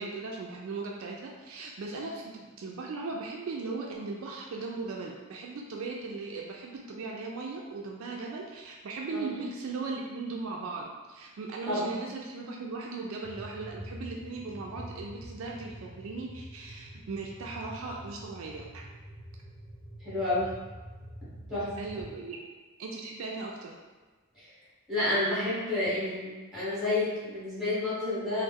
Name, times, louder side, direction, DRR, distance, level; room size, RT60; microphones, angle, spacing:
voice 1, 0.0-18.8 21.8-22.4 22.8-23.7, right 3 dB, 65° right, -1 dB, 0.3 m, -38 dB
sound 1, 13.2-22.1, equal, 35° left, 0.7 m, -46 dB
voice 2, 20.0-20.5 21.5-21.7 24.3-24.4 24.9-28.4, left 2 dB, ahead, -11 dB, 1.3 m, -30 dB
3.1 x 2.0 x 3.4 m, 1.3 s
head